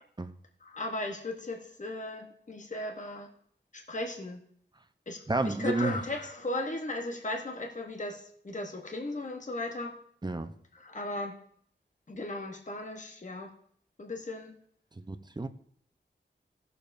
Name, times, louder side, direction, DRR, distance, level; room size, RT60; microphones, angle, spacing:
voice 1, 0.6-3.3 3.7-4.4 5.1-9.9 10.8-11.3 12.1-13.5 14.0-14.6, left 2 dB, 45° left, 1.0 m, -36 dB
voice 2, 5.3-6.0 10.2-10.5 15.0-15.5, right 2 dB, 25° right, 0.7 m, -31 dB
17.0 x 6.8 x 2.6 m
wide cardioid pair, 60°, 18 cm